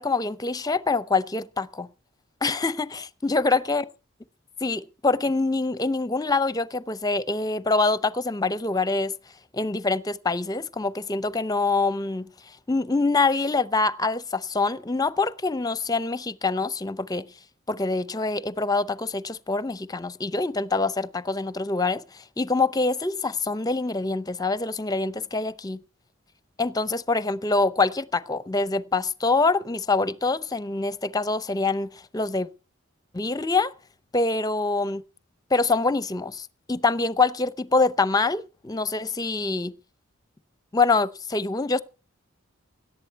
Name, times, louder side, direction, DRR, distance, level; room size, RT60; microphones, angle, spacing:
voice 1, 0.0-1.9 2.4-3.8 4.6-9.1 9.5-12.3 12.7-17.3 17.7-25.8 26.6-32.5 33.1-33.7 34.1-35.0 35.5-39.8 40.7-41.8, left 3 dB, 20° left, 0.6 m, -25 dB
17.0 x 11.5 x 4.6 m
head